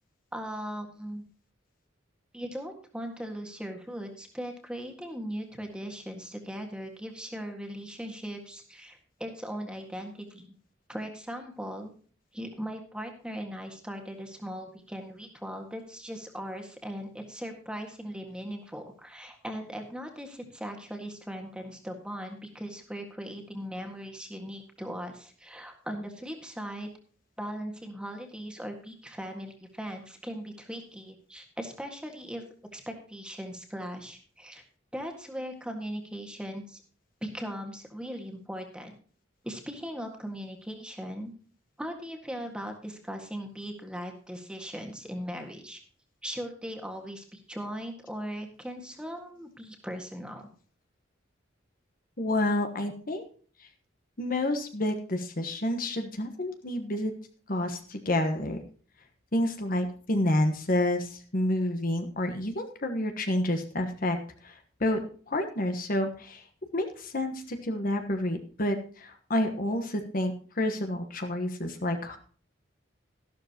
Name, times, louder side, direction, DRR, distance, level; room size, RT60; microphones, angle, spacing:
voice 1, 0.3-1.2 2.3-10.5 10.9-11.9 12.3-26.9 27.4-32.4 32.7-34.6 34.9-36.8 37.2-39.0 39.4-41.3 41.8-45.8 46.2-50.5, equal, 5° right, 3 dB, 1.7 m, -39 dB
voice 2, 52.2-53.2 53.6-53.7 54.2-57.1 57.5-58.6 59.3-64.2 64.4-65.0 65.3-66.4 66.7-72.2, left 1 dB, 45° left, 6 dB, 1.2 m, -29 dB
13.0 x 12.0 x 2.9 m, 0.42 s
head